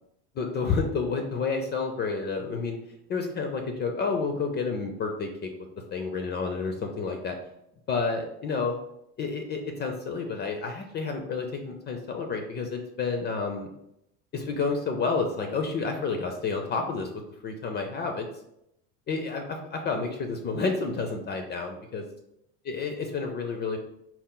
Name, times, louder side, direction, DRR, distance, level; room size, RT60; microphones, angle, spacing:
voice 1, 0.4-2.8 3.1-5.5 5.9-7.4 7.9-8.8 9.2-13.7 14.3-17.1 17.4-18.3 19.1-22.0 22.7-23.8, left 4 dB, 30° left, 4 dB, 0.4 m, -30 dB
4.3 x 2.1 x 3.7 m, 0.81 s
supercardioid pair, 115°, 32 cm